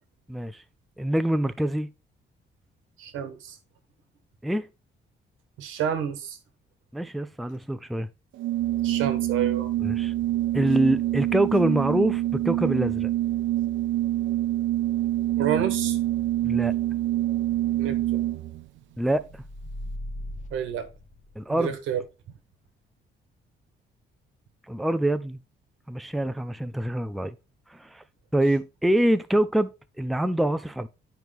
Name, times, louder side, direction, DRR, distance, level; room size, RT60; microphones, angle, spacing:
voice 1, 0.3-0.6 1.0-1.9 4.4-4.7 6.9-8.1 9.8-10.1 10.5-13.1 16.4-16.7 19.0-19.2 21.4-21.7 24.7-25.4 25.9-27.4 27.7-28.0 28.3-29.7 30.0-30.9, right 1 dB, ahead, 0.4 m, -25 dB
voice 2, 3.0-3.6 5.6-6.4 8.8-9.7 15.4-16.0 17.8-18.3 20.5-20.9 21.5-22.0, right 8 dB, 90° right, 1.3 m, -29 dB
Organ, 8.4-18.6, right 14 dB, 75° right, 0.4 m, -26 dB
sound 1, 19.1-21.7, left 1 dB, 40° left, 1.1 m, -39 dB
9.2 x 4.6 x 3.4 m
cardioid pair, 90°, 20 cm